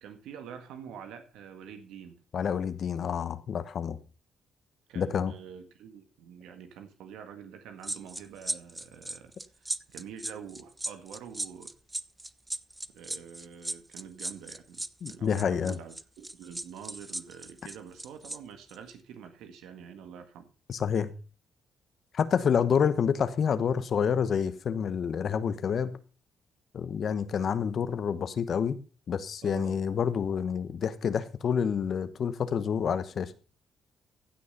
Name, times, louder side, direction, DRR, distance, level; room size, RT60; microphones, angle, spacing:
voice 1, 0.0-2.2 4.9-11.7 12.9-20.5 29.4-29.8, right 8 dB, 90° right, 1.7 m, -46 dB
voice 2, 2.3-4.0 4.9-5.3 15.0-15.8 20.7-21.1 22.1-26.0 26.7-28.8 29.1-33.3, left 7 dB, 55° left, 1.1 m, -28 dB
sound 1, 7.8-18.4 18.7-18.9, right 1 dB, 10° right, 0.6 m, -37 dB
15.5 x 6.4 x 5.4 m
cardioid pair, 90°, 0 cm